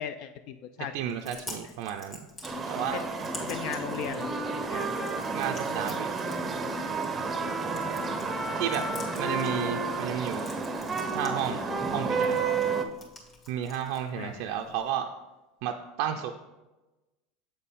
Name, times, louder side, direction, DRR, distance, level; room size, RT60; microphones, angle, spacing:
voice 1, 0.0-1.2 1.5-1.7 2.8-3.1 3.4-4.3 4.7-4.9 7.8-9.2 14.2-14.5, left 9 dB, 60° left, 10 dB, 0.3 m, -39 dB
Chewing mastication, 0.9-14.9, left 2 dB, 30° left, 1.6 m, -49 dB
voice 2, 0.9-2.2 2.7-3.0 5.3-6.1 8.6-8.9 9.1-10.5 11.1-11.6 11.9-12.4 13.5-15.1 15.6-16.3, right 9 dB, 65° right, 4 dB, 0.4 m, -32 dB
sound 1, 2.4-12.8, right 4 dB, 20° right, 0.6 m, -31 dB
7.7 x 4.2 x 3.6 m, 1.1 s
supercardioid pair, 120°, 0 cm